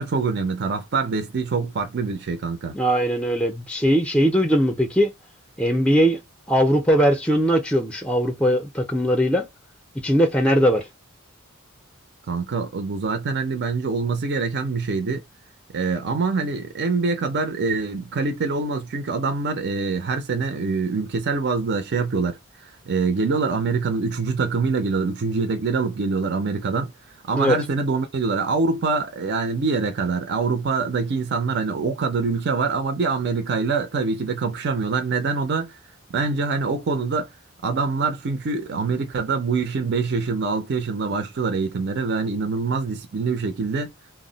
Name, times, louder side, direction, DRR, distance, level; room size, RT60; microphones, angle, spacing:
voice 1, 0.0-2.7 12.3-15.2 15.7-22.4 22.6-26.9 27.3-35.8 36.1-37.3 37.6-43.9, right 4 dB, 50° right, 0.5 m, -24 dB
voice 2, 2.7-5.1 5.6-6.2 6.5-9.4 10.0-10.8 27.3-27.6, equal, 5° left, 0.5 m, -20 dB
2.2 x 2.0 x 3.8 m
head